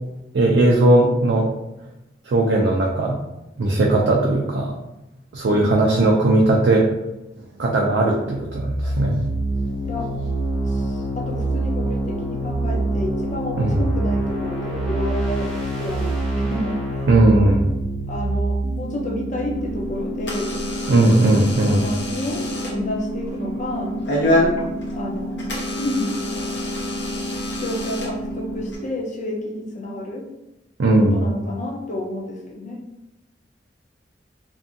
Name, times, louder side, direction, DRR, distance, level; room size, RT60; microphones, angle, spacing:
voice 1, 0.3-1.5 2.3-3.2 3.6-4.8 5.3-6.9 7.6-9.2 13.6-13.8 17.1-17.7 20.9-21.8 30.8-31.2, right 2 dB, 75° right, -1 dB, 0.4 m, -17 dB
voice 2, 5.4-5.8 9.8-10.1 10.7-17.1 18.1-20.6 21.7-24.0 24.9-26.1 27.6-30.3 31.0-32.8, left 1 dB, 45° left, 0 dB, 0.5 m, -30 dB
sound 1, 8.4-20.1, right 2 dB, 5° left, 0.7 m, -25 dB
sound 2, 18.6-28.6, right 1 dB, 60° right, 0.8 m, -31 dB
Door / Alarm, 19.5-28.8, left 1 dB, 85° left, 0.8 m, -28 dB
2.6 x 2.5 x 2.6 m, 0.94 s
head